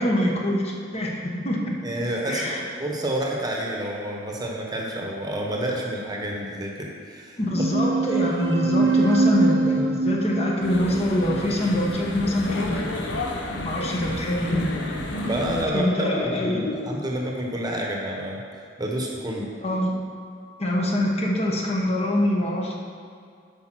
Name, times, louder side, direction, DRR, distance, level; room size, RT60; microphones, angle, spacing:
voice 1, 0.0-1.6 2.3-2.7 7.4-12.8 13.6-14.9 15.7-16.9 19.6-20.0 20.6-22.7, left 1 dB, 35° left, -1 dB, 1.1 m, -24 dB
voice 2, 1.8-2.4 2.8-7.4 15.1-15.9 16.2-19.5, right 1 dB, 20° right, -1 dB, 1.1 m, -29 dB
sound 1, 7.5-12.5, right 3 dB, 80° right, 0.8 m, -24 dB
sound 2, 10.6-15.6, left 1 dB, 80° left, 1.0 m, -31 dB
8.4 x 5.4 x 6.1 m, 2.2 s
head